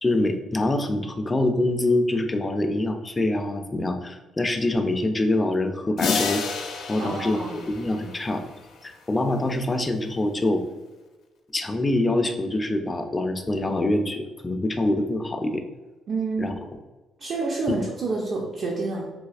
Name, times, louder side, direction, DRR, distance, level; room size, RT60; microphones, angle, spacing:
voice 1, 0.0-6.4 6.9-7.4 7.7-8.4 8.8-10.6 11.5-15.6 16.4-16.5 17.7-17.8, left 2 dB, 25° left, 6 dB, 0.4 m, -25 dB
sound 1, 6.0-8.7, left 4 dB, 85° left, 0.5 m, -30 dB
voice 2, 7.0-7.6 16.1-16.5 17.2-19.1, right 3 dB, 65° right, -2 dB, 0.5 m, -28 dB
4.0 x 2.7 x 2.4 m, 1.2 s
cardioid pair, 90°, 0 cm